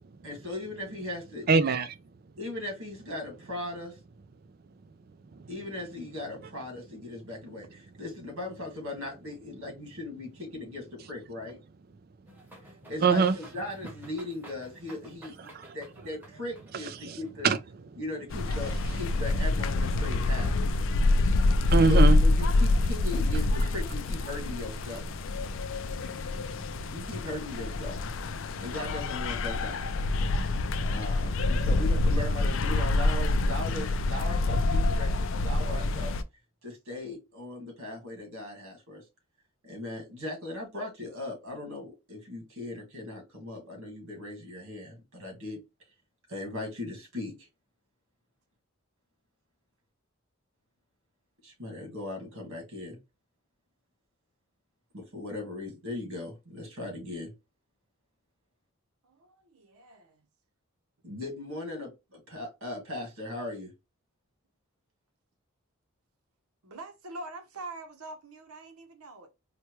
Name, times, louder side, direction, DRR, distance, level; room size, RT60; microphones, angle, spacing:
voice 1, 0.2-1.5 2.4-4.0 5.5-11.6 12.9-17.5 18.0-20.6 21.9-25.0 26.9-28.0 28.6-30.1 30.9-36.2 36.6-39.0 39.6-45.6 46.3-47.5 51.4-53.0 54.9-57.3 61.0-63.7, left 2 dB, 65° right, 1.8 m, -38 dB
voice 2, 1.5-2.0 5.4-5.5 13.0-13.3 15.5-15.7 17.0-17.2 17.4-17.6 20.9-22.2 26.0-26.1, right 5 dB, 45° right, 0.3 m, -24 dB
sound 1, 12.3-17.3, right 1 dB, 10° right, 0.8 m, -52 dB
sound 2, 18.3-36.2, left 2 dB, 60° left, 0.3 m, -26 dB
voice 3, 59.0-60.3 66.6-69.3, right 2 dB, 85° right, 0.8 m, -44 dB
4.3 x 2.2 x 3.0 m
head